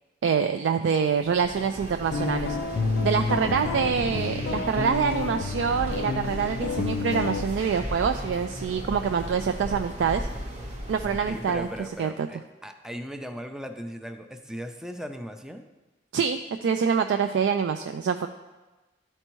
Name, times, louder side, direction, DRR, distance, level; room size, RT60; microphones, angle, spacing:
voice 1, 0.2-2.6 3.0-10.3 10.9-11.7 12.0-12.3 16.1-18.3, right 6 dB, 75° right, 7 dB, 0.3 m, -25 dB
sound 1, 1.2-12.0, equal, 40° right, 0.9 m, -36 dB
sound 2, 2.1-7.4, left 3 dB, 75° left, 0.5 m, -29 dB
voice 2, 3.4-4.1 9.7-9.8 11.0-15.6, equal, 5° right, 6 dB, 0.4 m, -38 dB
12.0 x 4.4 x 3.0 m, 1.2 s
head